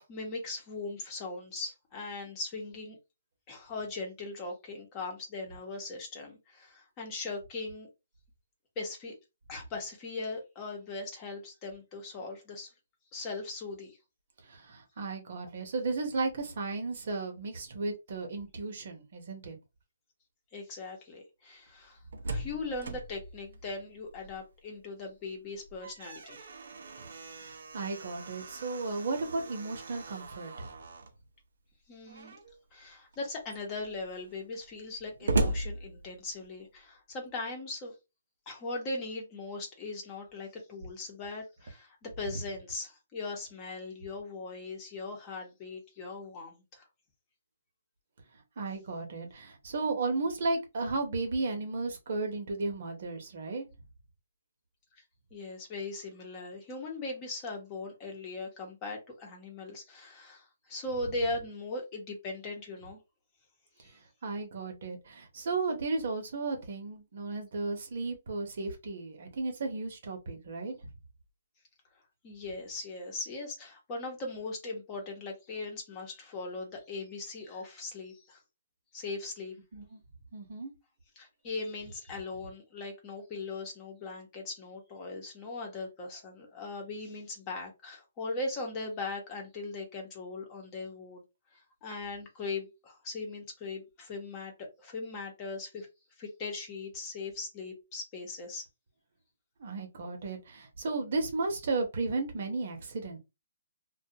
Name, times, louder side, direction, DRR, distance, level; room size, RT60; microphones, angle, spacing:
voice 1, 0.1-3.0 3.5-7.9 8.8-9.1 9.5-12.7 13.1-14.0 20.5-22.0 22.3-26.5 31.9-32.4 32.7-37.9 38.5-46.8 55.3-63.0 63.8-63.9 72.2-78.4 78.9-79.5 81.2-91.2 91.5-95.9 96.2-98.6, left 3 dB, 25° left, 0.9 m, -39 dB
voice 2, 14.4-19.6 27.0-30.7 48.6-53.6 64.2-70.8 79.7-80.0 80.3-80.7 99.6-103.2, right 3 dB, 55° right, 0.9 m, -34 dB
Slam, 21.8-24.6 25.0-25.1 25.5-31.2 32.1-32.6 33.1-33.2 33.5-36.6, right 2 dB, 75° right, 0.6 m, -38 dB
2.4 x 2.3 x 2.8 m
hypercardioid pair, 155°, 0 cm